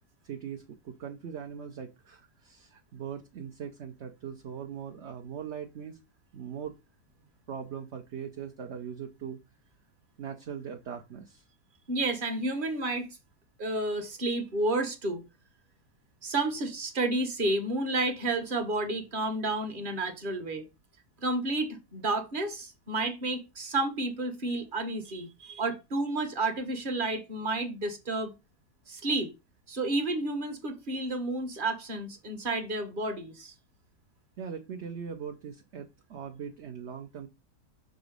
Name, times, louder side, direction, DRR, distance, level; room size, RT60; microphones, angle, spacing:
voice 1, 0.2-6.0 6.3-6.8 7.5-9.4 10.2-11.4 34.4-37.3, right 7 dB, 50° right, 0.9 m, -40 dB
voice 2, 11.9-13.1 13.6-15.2 16.2-20.7 21.2-28.3 28.9-29.3 29.7-33.5, right 2 dB, 35° right, 1.3 m, -31 dB
6.0 x 4.0 x 5.2 m
omnidirectional pair, 1.8 m